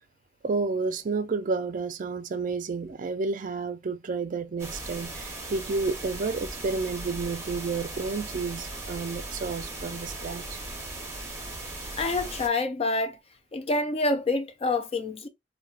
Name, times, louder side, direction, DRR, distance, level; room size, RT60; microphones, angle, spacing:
voice 1, 0.4-10.6, right 4 dB, 45° right, 0.4 m, -31 dB
sound 1, 4.6-12.5, right 2 dB, 15° right, 0.8 m, -38 dB
voice 2, 12.0-13.2 13.5-15.3, left 2 dB, 30° left, 0.4 m, -27 dB
4.4 x 2.1 x 2.4 m
head